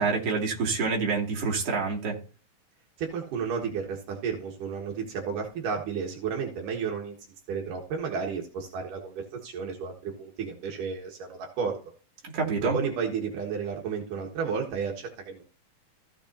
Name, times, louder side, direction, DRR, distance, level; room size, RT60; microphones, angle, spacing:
voice 1, 0.0-2.2 12.3-12.8, right 4 dB, 50° right, 3.3 m, -27 dB
voice 2, 3.0-7.2 7.5-11.8 12.6-15.5, right 6 dB, 80° right, 3.0 m, -32 dB
15.0 x 7.0 x 2.7 m
omnidirectional pair, 3.8 m